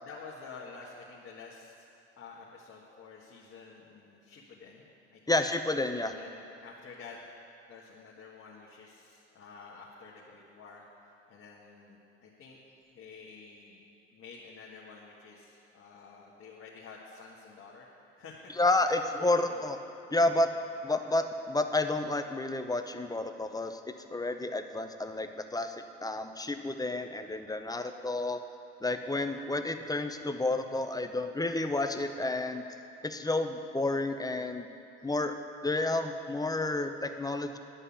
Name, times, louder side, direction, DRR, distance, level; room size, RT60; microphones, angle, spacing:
voice 1, 0.0-1.9 2.2-5.4 6.0-7.2 7.7-13.8 14.1-17.9 18.2-19.7 20.1-21.1 35.0-35.1, left 4 dB, 45° left, -4 dB, 1.6 m, -50 dB
voice 2, 5.3-6.1 18.6-19.8 20.1-20.5 20.8-23.8 24.1-28.4 28.8-32.6 33.0-34.7 35.0-35.4 35.6-37.6, left 2 dB, 10° left, 7 dB, 0.7 m, -30 dB
10.0 x 5.4 x 8.5 m, 2.7 s
hypercardioid pair, 60°, 34 cm